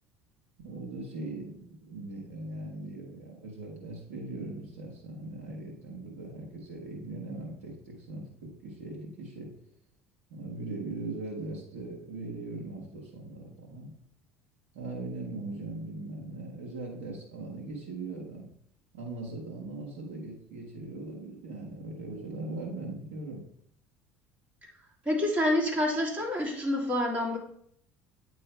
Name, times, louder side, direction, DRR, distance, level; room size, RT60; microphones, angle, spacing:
voice 1, 0.6-9.5 10.3-13.9 14.7-18.5 18.9-23.4, right 2 dB, 85° right, -2 dB, 1.5 m, -40 dB
voice 2, 25.0-27.4, left 1 dB, 20° right, -4 dB, 3.0 m, -27 dB
8.9 x 3.1 x 4.5 m, 0.67 s
hypercardioid pair, 70°, 7 cm